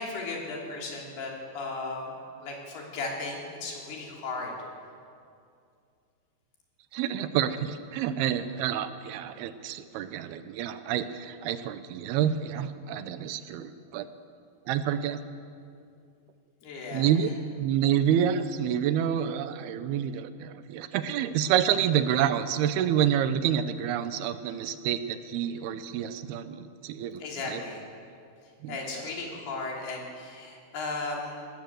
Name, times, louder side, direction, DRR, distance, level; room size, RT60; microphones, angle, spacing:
voice 1, 0.0-2.1 2.4-4.5 16.6-17.1 27.2-27.8 28.7-31.5, left 3 dB, 90° left, -1 dB, 5.2 m, -36 dB
voice 2, 6.9-14.1 14.7-15.2 16.9-17.3 17.6-27.6 28.6-29.0, right 9 dB, 80° right, 11 dB, 2.8 m, -28 dB
19.0 x 18.0 x 7.7 m, 2.4 s
omnidirectional pair, 4.5 m